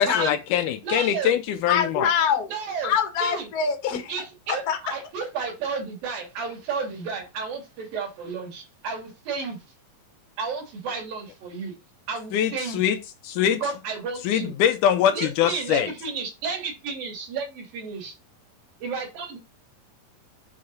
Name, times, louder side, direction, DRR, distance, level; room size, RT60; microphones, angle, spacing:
voice 1, 0.0-2.1 12.3-13.0 13.2-13.6 14.2-15.9, left 9 dB, 75° left, 1.9 m, -23 dB
voice 2, 0.8-1.4 2.5-2.9 3.2-3.5 4.1-4.6 4.9-9.6 10.4-11.8 12.1-12.8 13.5-14.5 15.1-18.1 18.8-19.4, right 5 dB, 70° right, 4.6 m, -32 dB
voice 3, 1.7-2.5 2.8-4.1 4.5-4.8, left 7 dB, 50° left, 1.1 m, -24 dB
7.6 x 3.9 x 5.4 m
omnidirectional pair, 4.2 m